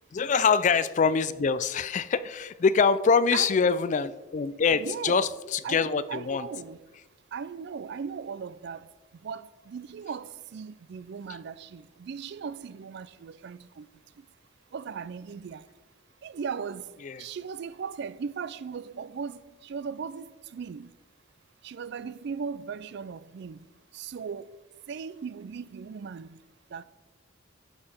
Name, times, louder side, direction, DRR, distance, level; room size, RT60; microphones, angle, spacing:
voice 1, 0.1-6.5 17.0-17.3, left 5 dB, 40° left, 0.3 m, -24 dB
voice 2, 3.3-3.6 4.8-5.3 5.6-6.8 7.3-8.9 9.2-13.9 14.7-15.6 16.2-16.9 17.2-20.9 21.6-23.6 23.9-24.5 24.9-26.4 26.7-26.8, right 6 dB, 60° right, 0.3 m, -37 dB
12.0 x 4.7 x 4.3 m
head